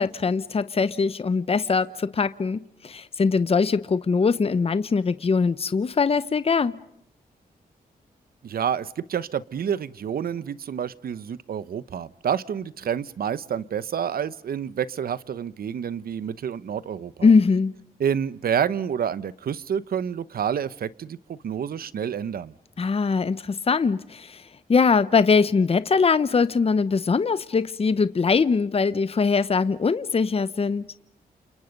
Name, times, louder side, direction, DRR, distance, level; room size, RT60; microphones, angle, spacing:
voice 1, 0.0-6.8 17.2-17.7 22.8-24.4 24.7-30.9, left 5 dB, 40° left, 14 dB, 1.0 m, -22 dB
voice 2, 8.4-17.3 18.0-22.5, right 8 dB, 70° right, 17 dB, 1.0 m, -28 dB
29.5 x 28.0 x 5.4 m, 0.72 s
cardioid pair, 80°, 16 cm